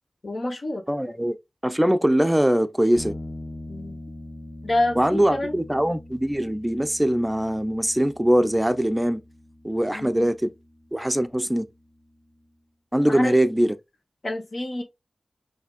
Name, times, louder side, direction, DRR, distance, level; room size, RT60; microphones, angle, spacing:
voice 1, 0.2-0.8 3.7-4.0 4.6-5.5 9.9-10.3 13.1-13.4 14.2-14.8, left 1 dB, 65° left, 1.2 m, -28 dB
voice 2, 0.9-1.4 1.6-3.1 5.0-9.2 9.6-10.5 10.9-11.7 12.9-13.8, right 1 dB, 10° right, 0.5 m, -22 dB
sound 1, 3.0-12.4, left 1 dB, 85° left, 1.1 m, -43 dB
5.7 x 2.7 x 2.4 m
wide cardioid pair, 55°, 0 cm